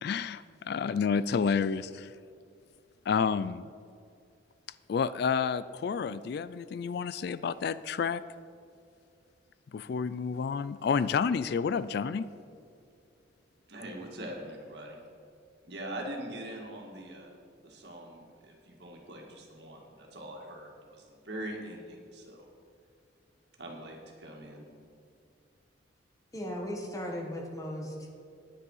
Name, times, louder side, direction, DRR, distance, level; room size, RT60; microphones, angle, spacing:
voice 1, 0.0-2.1 3.1-3.7 4.9-8.2 9.7-12.3, left 6 dB, 55° left, 15 dB, 0.3 m, -30 dB
voice 2, 13.7-15.0 15.6-17.3 17.6-22.5 23.6-24.7, right 1 dB, 60° right, 0 dB, 2.1 m, -42 dB
voice 3, 26.3-28.1, equal, 20° left, 1 dB, 1.4 m, -37 dB
9.9 x 9.4 x 5.6 m, 2.4 s
head